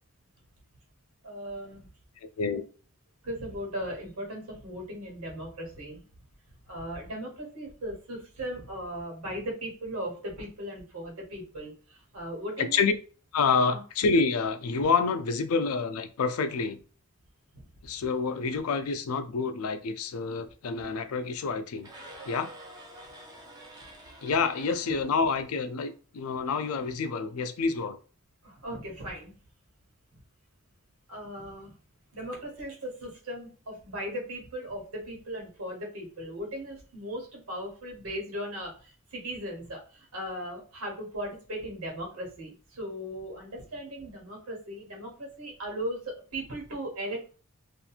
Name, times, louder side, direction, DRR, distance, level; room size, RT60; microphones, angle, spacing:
voice 1, 1.2-1.9 2.5-2.6 3.2-6.1 6.7-12.8 13.7-13.8 28.4-29.4 31.1-31.7 32.1-47.4, equal, 85° right, 0 dB, 1.3 m, -38 dB
voice 2, 12.6-12.9 13.3-16.8 17.8-21.9 22.3-22.5 24.2-28.0, left 4 dB, 85° left, 9 dB, 0.4 m, -28 dB
sound 1, 21.8-25.9, right 1 dB, 20° right, 0.5 m, -48 dB
2.9 x 2.5 x 2.4 m, 0.38 s
head